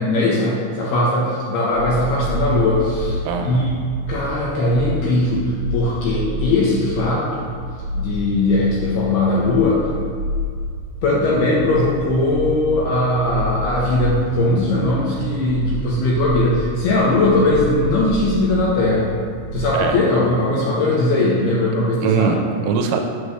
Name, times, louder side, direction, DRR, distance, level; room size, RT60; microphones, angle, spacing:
voice 1, 0.0-3.8 4.1-7.4 8.0-9.8 11.0-19.1 19.5-22.4, left 2 dB, 75° left, -5 dB, 2.4 m, -19 dB
sound 1, 1.7-20.1, left 1 dB, 65° right, 2.5 m, -29 dB
voice 2, 3.2-3.7 19.7-20.0 22.0-23.1, right 6 dB, 85° right, 4 dB, 2.9 m, -21 dB
8.2 x 3.1 x 6.3 m, 2.1 s
omnidirectional pair, 5.4 m